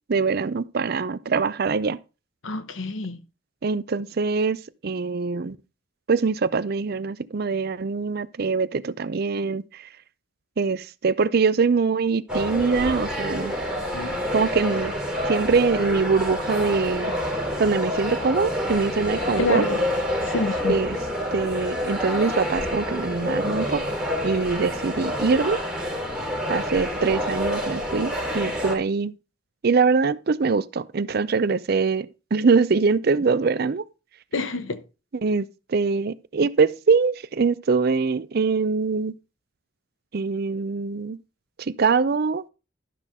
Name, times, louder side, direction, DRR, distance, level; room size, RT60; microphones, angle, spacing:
voice 1, 0.1-2.0 3.6-5.6 6.1-9.9 10.6-13.5 14.3-14.9 15.3-17.1 17.6-19.6 20.7-21.0 21.3-23.8 24.2-25.6 26.5-29.1 29.6-33.8 35.2-39.2 40.1-41.2 41.6-42.4, right 4 dB, 50° right, 0.5 m, -23 dB
voice 2, 2.4-3.2 13.9-14.2 19.4-19.8 20.2-20.8 34.3-34.8, left 2 dB, 85° left, 0.9 m, -27 dB
sound 1, 12.3-28.8, equal, 5° right, 3.9 m, -28 dB
12.0 x 5.8 x 3.6 m
head